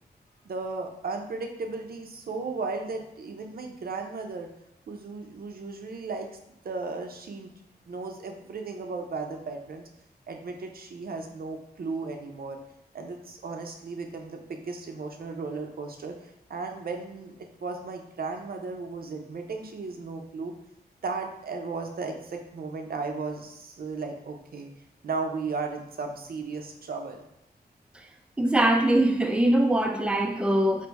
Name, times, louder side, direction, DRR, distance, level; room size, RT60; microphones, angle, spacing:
voice 1, 0.4-4.5 4.9-6.3 6.6-7.5 7.9-9.8 10.3-12.6 12.9-20.5 21.0-24.7 25.0-27.2, right 4 dB, 65° right, 3 dB, 0.6 m, -35 dB
voice 2, 28.4-30.9, right 1 dB, 5° right, 4 dB, 0.4 m, -22 dB
3.4 x 2.6 x 4.0 m, 0.81 s
wide cardioid pair, 95°, 17 cm